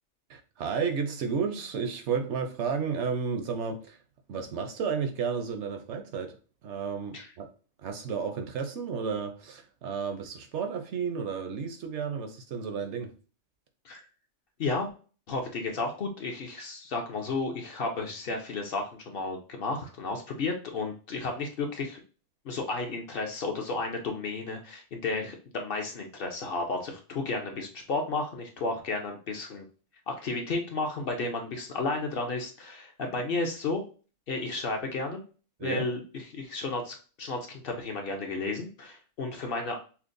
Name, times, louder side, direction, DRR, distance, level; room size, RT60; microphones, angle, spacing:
voice 1, 0.3-4.0 4.3-6.4 6.6-7.5 7.8-13.1 35.6-35.9, right 6 dB, 70° right, 0.9 m, -32 dB
voice 2, 14.6-14.9 15.3-22.0 22.4-29.6 30.1-33.8 34.3-35.2 35.6-39.8, left 3 dB, 55° left, 0.8 m, -33 dB
5.7 x 2.1 x 2.5 m
omnidirectional pair, 1.3 m